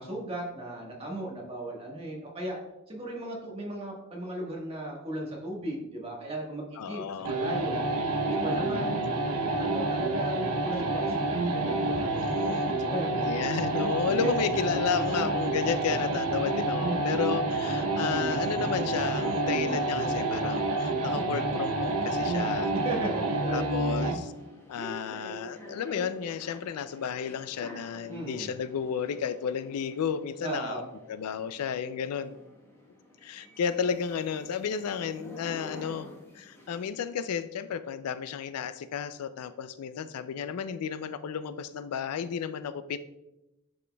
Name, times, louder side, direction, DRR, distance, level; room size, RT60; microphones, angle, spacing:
voice 1, 0.0-2.6 2.9-7.8 8.2-8.9 9.6-12.1 12.9-13.2 14.2-14.3 22.7-24.1 28.1-28.5 30.4-30.9, right 1 dB, 25° right, -2 dB, 1.4 m, -36 dB
voice 2, 6.8-7.3 8.5-9.1 12.1-22.7 23.5-24.3 24.7-30.8 31.1-32.4 33.2-43.0, left 7 dB, 80° left, 13 dB, 0.4 m, -33 dB
sound 1, 7.2-24.3, right 2 dB, 75° right, 0.7 m, -28 dB
sound 2, 17.7-36.9, equal, 10° left, 1.1 m, -46 dB
10.5 x 4.2 x 2.2 m, 0.94 s
head